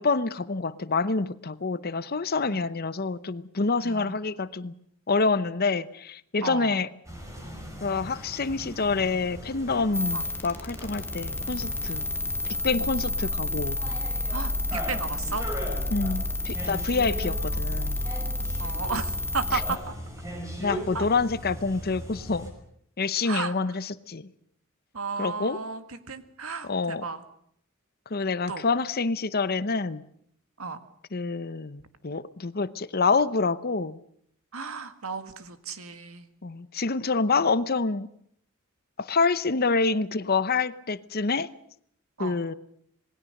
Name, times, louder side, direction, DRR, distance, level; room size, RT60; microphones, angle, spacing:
voice 1, 0.0-4.7 5.1-6.9 7.8-12.1 12.6-13.8 15.9-18.0 20.6-22.5 23.0-24.3 25.2-25.6 26.7-27.1 28.1-30.0 31.1-34.0 36.4-38.1 39.0-41.5 42.2-42.5, left 4 dB, 45° left, 15 dB, 0.8 m, -27 dB
voice 2, 6.4-6.8 10.1-10.3 14.3-15.5 18.6-19.8 20.9-21.1 23.2-23.5 24.9-27.2 28.5-28.7 30.6-30.8 34.5-36.3 42.2-42.4, right 4 dB, 85° right, 9 dB, 1.9 m, -34 dB
sound 1, 7.0-22.5, equal, 15° right, 5.9 m, -39 dB
sound 2, 9.9-19.8, left 1 dB, 10° left, 1.3 m, -30 dB
27.0 x 20.0 x 6.6 m, 0.69 s
head